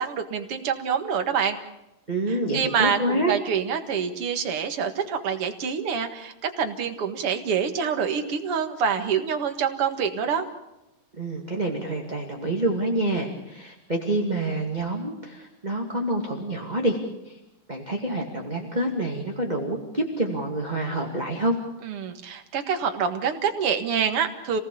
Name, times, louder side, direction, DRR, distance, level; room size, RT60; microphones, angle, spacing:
voice 1, 0.0-1.6 2.3-10.5 21.8-24.6, right 7 dB, 50° right, 6 dB, 2.3 m, -26 dB
voice 2, 2.1-3.4 11.2-17.0 17.3-17.4 17.7-21.6, right 1 dB, 15° right, 0 dB, 1.8 m, -27 dB
28.0 x 18.0 x 7.1 m, 0.92 s
omnidirectional pair, 3.8 m